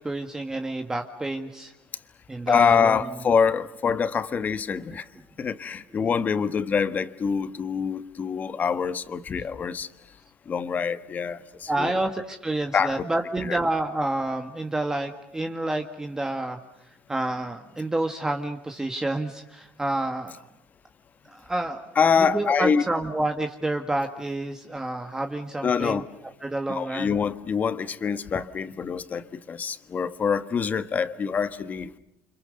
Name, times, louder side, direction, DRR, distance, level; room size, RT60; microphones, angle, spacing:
voice 1, 0.0-1.7 2.3-3.0 4.9-5.0 11.7-16.6 17.1-20.4 21.3-21.8 22.2-26.0 26.4-27.1, right 2 dB, 10° right, 5 dB, 1.7 m, -29 dB
voice 2, 2.5-5.0 5.4-9.9 10.5-11.9 12.7-13.0 13.4-13.6 22.0-22.8 25.6-26.0 26.7-31.9, left 6 dB, 35° left, 12 dB, 1.4 m, -25 dB
29.5 x 26.0 x 6.6 m, 0.80 s
cardioid pair, 110°, 5 cm